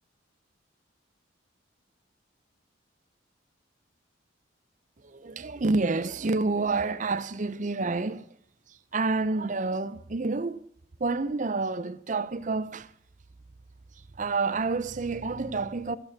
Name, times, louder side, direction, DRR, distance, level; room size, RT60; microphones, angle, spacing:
voice 1, 5.0-8.4 8.7-10.6 11.0-12.9 13.9-16.0, right 3 dB, 40° right, 0.6 m, -29 dB
15.5 x 6.6 x 7.2 m
head